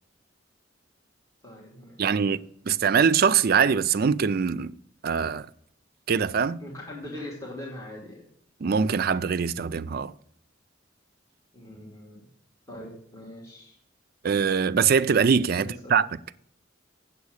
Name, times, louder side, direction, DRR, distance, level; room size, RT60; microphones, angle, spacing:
voice 1, 1.4-2.2 6.6-8.3 11.5-12.3 12.7-13.8 15.6-16.0, left 1 dB, 15° left, 2.5 m, -41 dB
voice 2, 2.0-2.4 2.7-4.7 5.0-5.5 6.1-6.6 8.6-10.1 14.2-16.1, right 6 dB, 50° right, 0.4 m, -23 dB
8.3 x 7.4 x 6.4 m
head